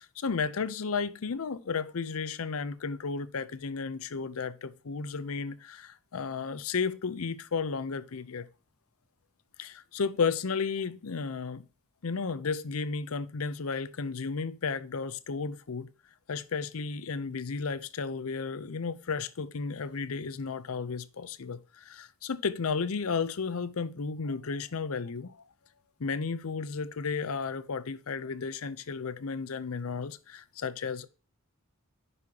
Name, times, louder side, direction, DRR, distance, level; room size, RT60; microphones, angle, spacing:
voice 1, 0.0-8.5 9.6-11.6 12.0-15.9 16.3-25.4 26.0-31.1, left 5 dB, 70° left, 0.6 m, -33 dB
9.7 x 5.6 x 2.8 m
head